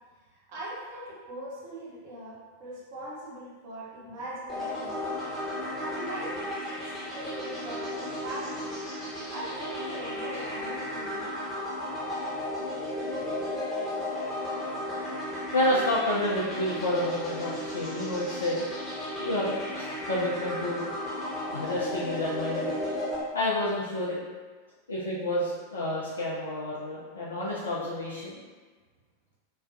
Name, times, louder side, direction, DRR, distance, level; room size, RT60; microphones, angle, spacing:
voice 1, 0.3-5.0 5.8-8.7 9.3-11.4 11.9-12.2 13.1-13.5, right 1 dB, 50° right, -6 dB, 0.8 m, -41 dB
sound 1, 4.5-23.2, left 1 dB, 10° left, 0.8 m, -34 dB
voice 2, 15.5-18.6 19.2-20.8 21.5-22.8 23.3-24.2 24.9-28.4, left 1 dB, 70° left, -7 dB, 0.4 m, -29 dB
2.3 x 2.1 x 2.5 m, 1.4 s
figure-of-eight pair, 90°, 0 cm